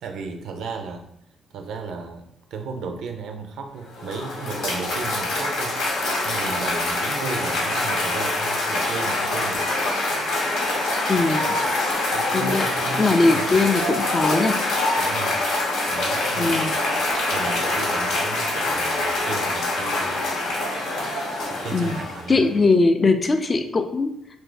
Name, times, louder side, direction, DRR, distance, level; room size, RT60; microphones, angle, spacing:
voice 1, 0.0-1.1 1.5-2.3 2.5-5.8 6.2-9.7 11.4-11.6 12.1-13.6 15.0-15.4 15.9-20.2 21.4-22.5, right 4 dB, 75° right, 4 dB, 0.4 m, -35 dB
Cheering / Applause, 3.8-22.4, left 2 dB, 85° left, 0.8 m, -25 dB
voice 2, 11.1-11.5 12.3-12.7 13.0-14.6 16.4-16.7 21.7-22.0 22.3-24.1, left 3 dB, 30° left, 8 dB, 0.3 m, -20 dB
2.6 x 2.6 x 3.7 m, 0.77 s
cardioid pair, 90°, 0 cm